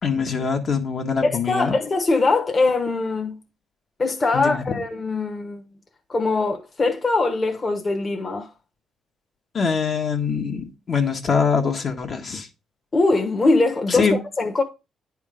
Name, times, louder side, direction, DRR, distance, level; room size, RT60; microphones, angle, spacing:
voice 1, 0.0-1.7 4.3-4.6 9.5-12.5 13.9-14.2, left 5 dB, 50° left, 1.5 m, -23 dB
voice 2, 1.2-3.4 4.0-5.6 6.1-8.5 12.9-14.6, left 3 dB, 30° left, 1.3 m, -22 dB
9.9 x 3.7 x 4.9 m
cardioid pair, 90°, 0 cm